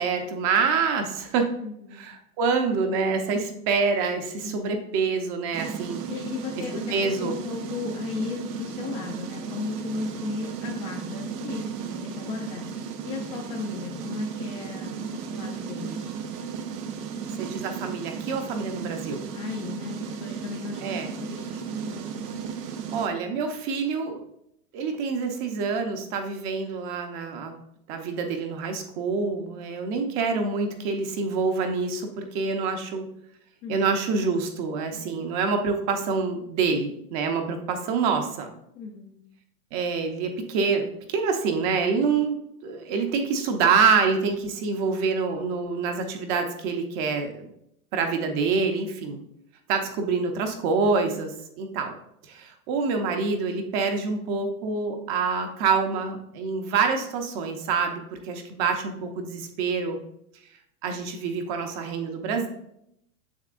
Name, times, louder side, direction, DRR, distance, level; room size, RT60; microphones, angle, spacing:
voice 1, 0.0-1.5 1.9-6.0 6.9-7.4 17.3-19.2 20.8-21.1 22.9-24.2 24.7-27.6 27.9-33.1 33.7-38.5 39.7-47.5 47.9-49.2 49.7-51.9 52.2-60.0 60.8-62.5, right 5 dB, 35° right, 5 dB, 0.7 m, -26 dB
voice 2, 1.6-2.0 4.4-4.7 6.1-16.1 19.3-22.3 33.6-33.9 38.7-39.2, left 5 dB, 25° left, 0 dB, 0.4 m, -36 dB
sound 1, 5.5-23.1, right 6 dB, 85° right, 1.0 m, -35 dB
7.3 x 5.9 x 2.5 m, 0.75 s
supercardioid pair, 145°, 46 cm